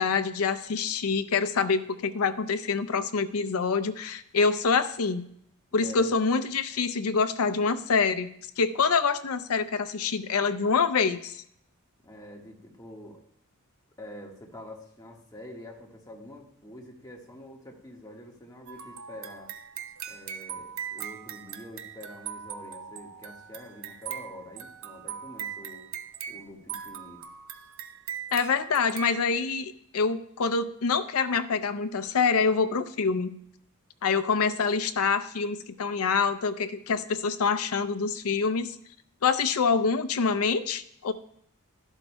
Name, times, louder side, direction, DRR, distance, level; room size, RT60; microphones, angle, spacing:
voice 1, 0.0-5.3 5.7-8.3 8.6-11.4 28.3-33.3 34.0-38.8 39.2-41.1, left 5 dB, 75° left, 11 dB, 0.5 m, -26 dB
voice 2, 5.8-6.1 12.0-13.2 14.0-19.5 20.1-25.9 26.3-27.2, left 1 dB, 15° left, 0 dB, 1.5 m, -46 dB
sound 1, 18.7-29.2, right 8 dB, 65° right, 0.6 m, -40 dB
12.5 x 11.5 x 2.2 m, 0.71 s
head